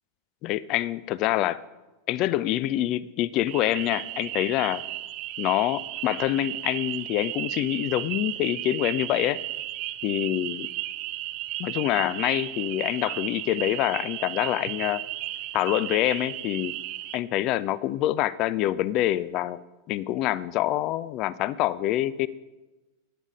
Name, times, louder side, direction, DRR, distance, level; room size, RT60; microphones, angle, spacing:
voice 1, 0.4-1.6 2.1-4.8 5.4-9.4 10.0-10.7 11.6-15.0 15.5-16.7 17.1-19.6 19.9-22.3, left 14 dB, 40° left, 18 dB, 0.4 m, -26 dB
sound 1, 3.5-17.2, right 15 dB, 40° right, 0.6 m, -34 dB
11.5 x 8.7 x 5.2 m, 1.1 s
figure-of-eight pair, 90°, 0 cm